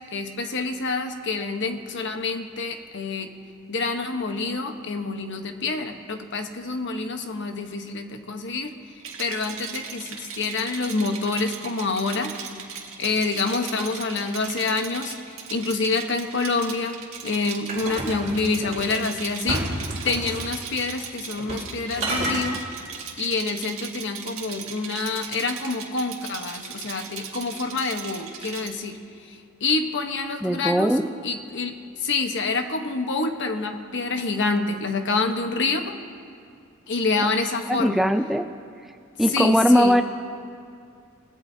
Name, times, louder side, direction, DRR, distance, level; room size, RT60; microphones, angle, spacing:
voice 1, 0.1-3.3 3.7-8.7 9.2-12.3 13.0-22.6 23.2-29.0 29.3-30.9 31.2-35.9 36.9-38.0 39.3-39.9, left 3 dB, 55° left, 5 dB, 1.1 m, -27 dB
Rattle, 9.0-28.7, right 7 dB, 65° right, 1.9 m, -38 dB
sound 1, 17.7-19.0 19.5-20.5 21.4-21.7 22.0-22.5, right 1 dB, 35° right, 3.8 m, -30 dB
voice 2, 30.4-31.0 37.7-38.4 39.2-40.0, equal, ahead, 6 dB, 0.4 m, -19 dB
29.5 x 17.5 x 2.8 m, 2.3 s
head